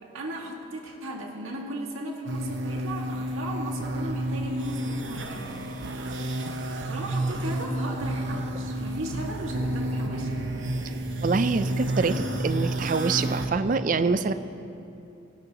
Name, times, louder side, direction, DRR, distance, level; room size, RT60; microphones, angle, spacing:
voice 1, 0.0-5.7 6.9-10.3, right 1 dB, 90° right, 0 dB, 1.9 m, -36 dB
sound 1, 2.3-13.5, right 1 dB, 65° right, 0.9 m, -30 dB
voice 2, 11.2-14.3, right 4 dB, 40° right, 11 dB, 0.4 m, -25 dB
18.0 x 15.5 x 2.9 m, 2.7 s
head